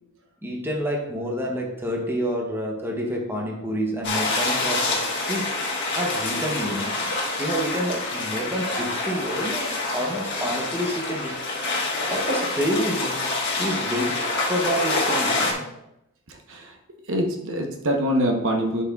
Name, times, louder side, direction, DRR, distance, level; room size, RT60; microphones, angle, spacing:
voice 1, 0.4-5.0 5.3-5.5 5.9-7.0 7.4-11.4 12.1-13.3 13.6-15.7, equal, 10° right, 0 dB, 0.9 m, -28 dB
sound 1, 4.0-15.5, left 2 dB, 50° left, 1.5 m, -26 dB
voice 2, 16.3-16.8 17.1-18.8, equal, 60° right, 2 dB, 1.0 m, -24 dB
11.0 x 5.6 x 2.4 m, 0.85 s
head